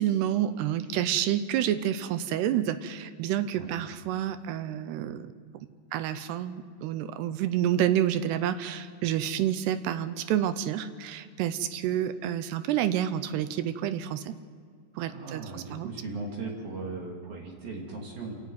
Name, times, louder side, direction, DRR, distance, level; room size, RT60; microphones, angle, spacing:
voice 1, 0.0-5.3 5.9-14.3 15.0-15.9, right 11 dB, 80° right, 12 dB, 2.8 m, -29 dB
voice 2, 15.1-18.4, right 3 dB, 60° right, -2 dB, 4.1 m, -38 dB
28.0 x 11.0 x 9.3 m, 2.1 s
omnidirectional pair, 4.9 m